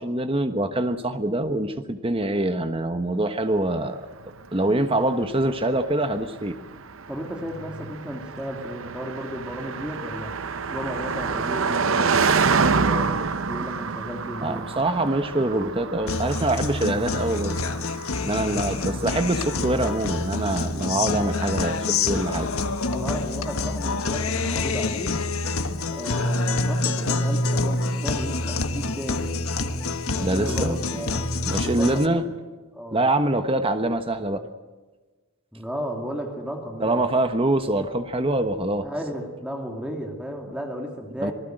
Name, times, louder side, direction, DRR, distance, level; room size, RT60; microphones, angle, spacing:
voice 1, 0.0-4.0 4.5-6.6 14.4-17.6 18.2-22.5 30.2-31.0 31.5-32.2 32.9-34.5 36.8-38.9 41.2-41.3, right 1 dB, 25° right, 8 dB, 1.2 m, -24 dB
Car passing by, 4.1-20.6, right 5 dB, 65° right, 0.8 m, -28 dB
voice 2, 7.1-10.4 10.7-14.7 22.9-25.2 25.9-29.3 30.1-31.2 31.6-32.3 32.7-33.0 35.5-37.0 38.8-41.3, equal, 5° right, 2 dB, 2.8 m, -34 dB
Guitar, 16.1-32.1, left 3 dB, 80° left, 1.4 m, -27 dB
26.5 x 19.0 x 7.9 m, 1.3 s
head